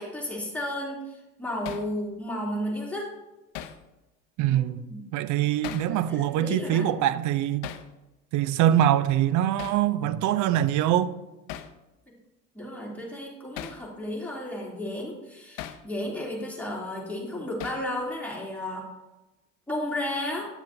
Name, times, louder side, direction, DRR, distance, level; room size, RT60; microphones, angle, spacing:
voice 1, 0.0-3.1 4.5-5.0 5.9-6.8 12.5-18.9 19.7-20.5, left 1 dB, 5° left, 2.8 m, -33 dB
Hammer, 1.7-1.9 3.5-3.8 5.6-5.9 7.6-7.9 9.6-9.8 11.5-11.8 13.6-13.8 15.6-15.8 17.6-17.9, left 11 dB, 65° left, 0.7 m, -38 dB
voice 2, 4.4-4.8 5.1-7.7 8.3-11.2, right 11 dB, 55° right, 0.5 m, -23 dB
9.0 x 7.4 x 2.6 m
hypercardioid pair, 80°, 37 cm